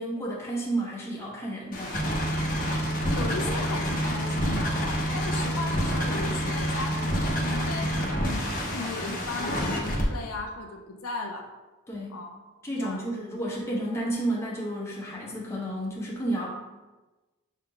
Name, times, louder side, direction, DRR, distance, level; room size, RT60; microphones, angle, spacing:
voice 1, 0.0-2.0 11.9-12.2 12.6-16.5, right 1 dB, 10° left, -5 dB, 1.0 m, -31 dB
sound 1, 1.7-10.0, equal, 40° left, 0.9 m, -28 dB
voice 2, 3.1-11.5 12.1-12.3 12.8-13.1, left 3 dB, 70° left, 2 dB, 0.5 m, -36 dB
6.4 x 3.7 x 2.2 m, 1.2 s
head